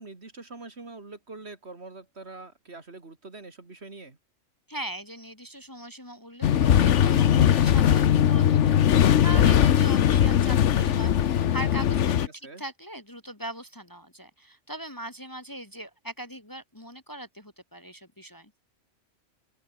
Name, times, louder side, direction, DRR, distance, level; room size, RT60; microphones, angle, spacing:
voice 1, 0.0-4.2 12.2-12.6, right 3 dB, 55° right, 3.0 m, -44 dB
voice 2, 4.7-8.8 9.2-12.3 12.6-18.5, right 1 dB, 15° left, 1.7 m, -40 dB
sound 1, 6.4-12.3, left 9 dB, 70° left, 1.2 m, -20 dB
open air
omnidirectional pair, 1.3 m